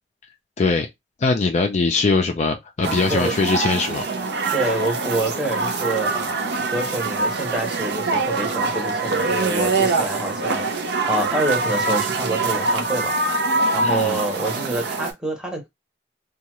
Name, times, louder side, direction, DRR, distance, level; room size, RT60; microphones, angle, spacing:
voice 1, 0.6-0.9 1.2-4.0 13.8-14.2, left 4 dB, 40° left, 0.4 m, -21 dB
sound 1, 2.8-15.1, right 3 dB, 65° right, 0.6 m, -24 dB
voice 2, 4.5-6.3 6.7-13.4 13.7-15.7, right 1 dB, 5° right, 0.8 m, -27 dB
2.8 x 2.3 x 2.9 m
head